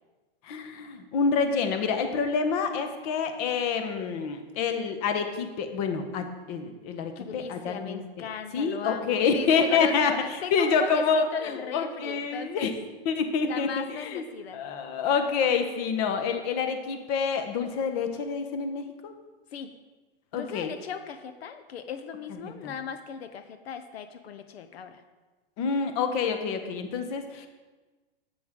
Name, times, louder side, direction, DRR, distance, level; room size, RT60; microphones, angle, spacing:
voice 1, 0.4-8.3 8.5-12.7 13.0-14.2 14.5-19.1 20.3-20.7 22.4-22.7 25.6-27.5, left 5 dB, 40° left, 7 dB, 1.1 m, -27 dB
voice 2, 7.2-12.7 13.4-14.6 19.5-19.7 20.3-25.0, left 7 dB, 80° left, 9 dB, 0.8 m, -37 dB
11.0 x 8.1 x 3.7 m, 1.3 s
hypercardioid pair, 150°, 31 cm